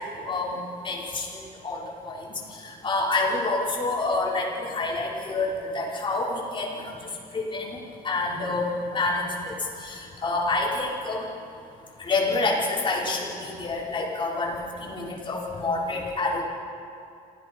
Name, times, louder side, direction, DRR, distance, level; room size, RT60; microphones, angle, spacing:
voice 1, 0.3-2.3 2.6-6.8 7.3-7.8 8.0-9.5 9.8-11.2 12.0-16.4, left 3 dB, 30° left, -5 dB, 5.7 m, -28 dB
27.5 x 17.0 x 5.7 m, 2.6 s
cardioid pair, 110°, 17 cm